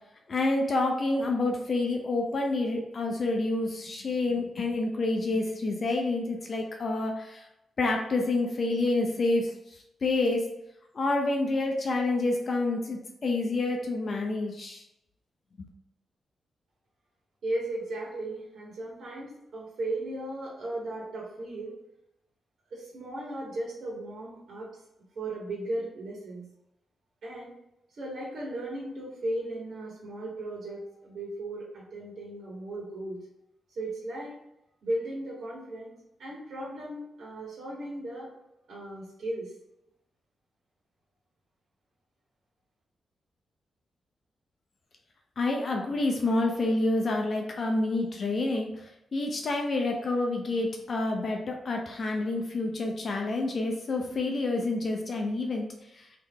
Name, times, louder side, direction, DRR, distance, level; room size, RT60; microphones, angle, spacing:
voice 1, 0.3-7.5 7.8-10.5 10.9-14.8 45.4-55.7 55.9-56.1, left 2 dB, 45° left, 1 dB, 0.6 m, -28 dB
voice 2, 17.4-21.7 22.7-24.7 25.1-26.5 27.2-27.5 28.0-33.2 33.7-34.3 34.8-35.9 36.2-38.3 38.7-39.5, right 1 dB, 60° right, -5 dB, 1.3 m, -36 dB
3.3 x 2.8 x 3.6 m, 0.86 s
cardioid pair, 105°, 0 cm